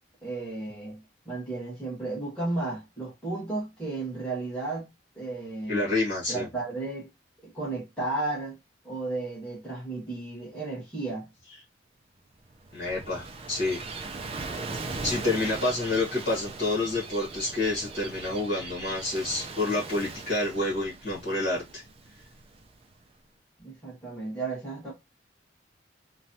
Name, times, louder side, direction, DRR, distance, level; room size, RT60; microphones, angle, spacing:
voice 1, 0.2-5.9 6.3-7.1 7.4-8.6 8.8-11.3 23.6-24.9, right 2 dB, 5° left, 1.5 m, -34 dB
voice 2, 5.7-6.5 12.7-13.8 15.0-21.8, left 2 dB, 55° left, 1.3 m, -28 dB
Gull seagull / Waves surf, 12.4-23.0, right 3 dB, 35° right, 0.5 m, -40 dB
3.1 x 2.3 x 2.7 m
head